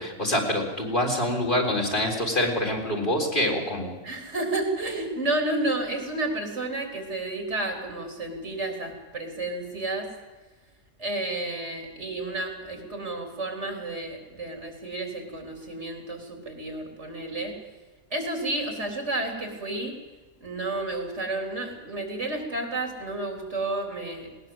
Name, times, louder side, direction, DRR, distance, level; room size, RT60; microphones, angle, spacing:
voice 1, 0.0-3.9, left 1 dB, 45° left, 0 dB, 4.2 m, -25 dB
voice 2, 4.0-10.1 11.0-17.5 18.1-19.9 20.4-24.3, right 2 dB, 75° right, 3 dB, 4.1 m, -31 dB
19.5 x 19.0 x 7.8 m, 1.2 s
omnidirectional pair, 1.2 m